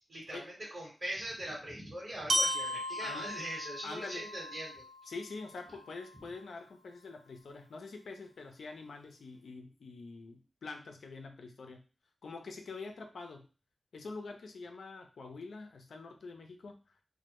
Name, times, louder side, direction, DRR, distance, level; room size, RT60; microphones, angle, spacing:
voice 1, 0.0-4.8, right 1 dB, 35° right, -5 dB, 1.1 m, -41 dB
Glockenspiel, 2.3-6.3, equal, 65° right, 0.5 m, -36 dB
voice 2, 3.8-4.3 5.1-11.8 12.2-13.5 13.9-16.8, left 3 dB, 85° left, 4 dB, 0.4 m, -45 dB
2.1 x 2.0 x 2.9 m, 0.34 s
cardioid pair, 45°, 0 cm